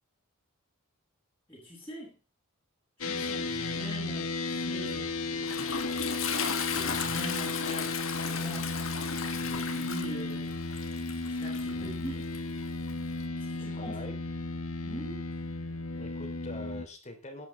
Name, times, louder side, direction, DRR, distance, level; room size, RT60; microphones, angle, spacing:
voice 1, 1.5-2.1 3.1-5.5 6.7-8.7 9.3-10.5 11.4-12.4 13.4-14.0 14.8-15.2, equal, 10° left, -7 dB, 7.7 m, -42 dB
sound 1, 3.0-16.9, left 3 dB, 85° left, 2.2 m, -34 dB
Toilet flush, 4.9-13.3, left 6 dB, 65° left, 2.6 m, -36 dB
voice 2, 11.7-12.0 13.7-14.2 15.9-17.5, left 1 dB, 35° left, 5 dB, 3.9 m, -44 dB
19.5 x 11.0 x 3.5 m, 0.32 s
head